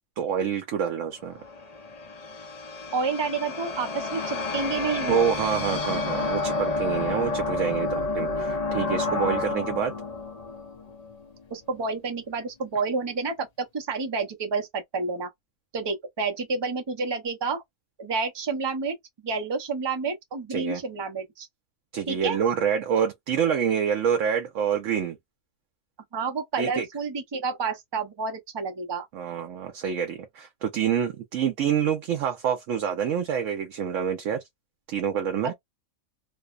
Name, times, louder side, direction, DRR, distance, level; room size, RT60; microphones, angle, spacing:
voice 1, 0.2-1.4 5.1-9.9 20.5-20.8 21.9-25.2 26.6-26.9 29.1-34.4 34.9-35.5, right 8 dB, 70° right, 0.9 m, -27 dB
sound 1, 1.2-11.5, left 3 dB, 60° left, 0.4 m, -30 dB
voice 2, 2.9-5.3 11.5-15.3 15.7-17.6 18.0-18.9 19.2-21.5 22.1-22.4 26.1-29.1 35.4-35.5, right 4 dB, 40° right, 0.3 m, -29 dB
2.6 x 2.0 x 2.3 m
omnidirectional pair, 1.4 m